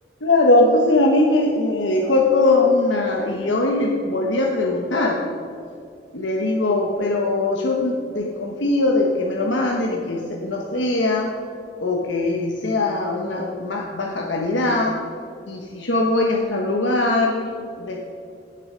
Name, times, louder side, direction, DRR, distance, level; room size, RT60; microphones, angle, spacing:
voice 1, 0.2-5.2 6.1-11.3 11.8-15.0 15.5-17.5 17.8-18.1, left 2 dB, 85° left, 0 dB, 1.2 m, -21 dB
16.5 x 6.8 x 5.1 m, 2.5 s
head